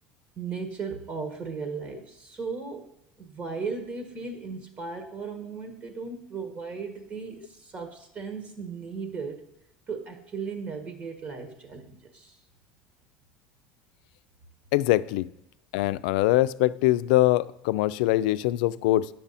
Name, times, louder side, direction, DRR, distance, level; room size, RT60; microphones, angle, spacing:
voice 1, 0.4-2.9 3.2-9.4 9.9-12.4, right 5 dB, 40° right, 5 dB, 1.4 m, -36 dB
voice 2, 14.7-15.3 15.7-19.1, left 16 dB, 85° left, 16 dB, 0.3 m, -23 dB
9.9 x 6.2 x 4.1 m, 0.84 s
supercardioid pair, 130°, 4 cm